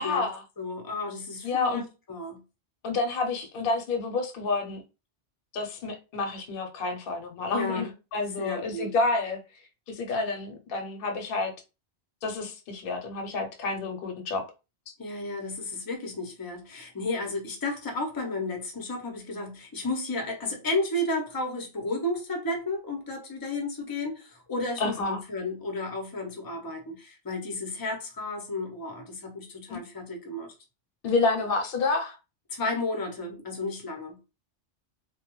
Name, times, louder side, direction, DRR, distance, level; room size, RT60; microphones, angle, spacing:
voice 1, 0.0-0.4 1.4-1.8 2.8-4.8 5.5-9.4 9.9-11.5 12.2-14.4 24.8-25.2 29.7-29.8 31.0-32.2, left 3 dB, 60° left, 0.8 m, -29 dB
voice 2, 0.6-2.4 7.5-7.9 8.4-8.9 15.0-30.5 32.5-34.2, left 2 dB, 30° left, 0.5 m, -33 dB
2.2 x 2.1 x 3.0 m
omnidirectional pair, 1.2 m